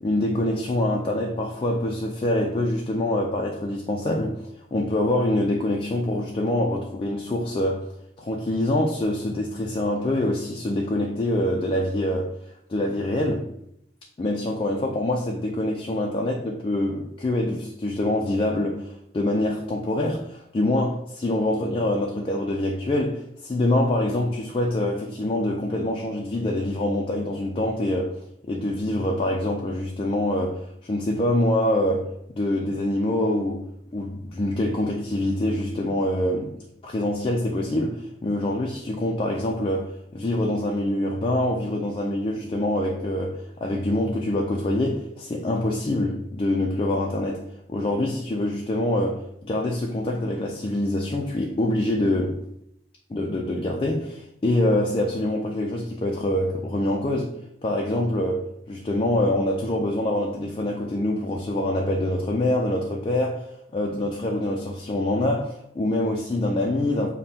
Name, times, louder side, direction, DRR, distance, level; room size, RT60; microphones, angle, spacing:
voice 1, 0.0-4.4 4.7-7.9 8.2-12.3 12.7-13.5 14.2-28.1 28.5-32.1 32.4-33.7 33.9-36.6 36.8-47.4 47.7-52.4 53.1-57.4 57.6-63.5 63.7-67.1, left 1 dB, 30° left, 0 dB, 0.3 m, -25 dB
5.2 x 2.2 x 2.8 m, 0.76 s
head